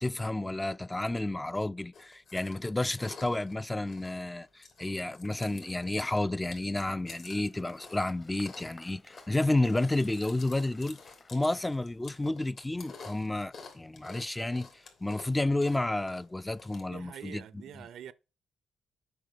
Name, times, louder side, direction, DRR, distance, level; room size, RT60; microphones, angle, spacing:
voice 1, 0.0-11.0 11.3-17.4, left 2 dB, 15° left, 0.3 m, -31 dB
Chewing mastication, 1.9-16.8, left 4 dB, 70° left, 2.8 m, -52 dB
Applause, 7.1-12.6, left 3 dB, 35° left, 0.9 m, -58 dB
voice 2, 16.9-18.1, right 10 dB, 85° right, 0.5 m, -45 dB
7.8 x 5.8 x 5.0 m
cardioid pair, 75°, 0 cm